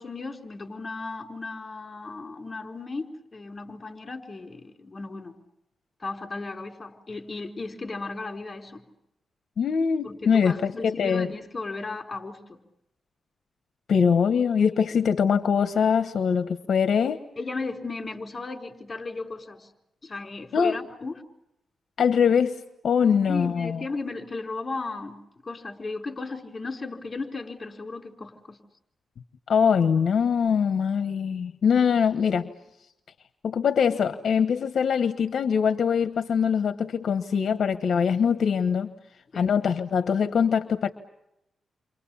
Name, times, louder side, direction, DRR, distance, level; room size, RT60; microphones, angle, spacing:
voice 1, 0.0-5.4 6.0-8.9 10.0-12.6 17.4-19.7 20.0-21.2 23.0-25.2 25.4-28.6 39.3-39.5, left 3 dB, 30° left, 4 dB, 4.4 m, -35 dB
voice 2, 9.6-11.3 13.9-17.2 20.5-20.8 22.0-23.8 29.5-32.5 33.4-38.9 39.3-40.9, left 6 dB, 70° left, 9 dB, 1.2 m, -23 dB
30.0 x 25.5 x 7.2 m, 0.86 s
cardioid pair, 90°, 0 cm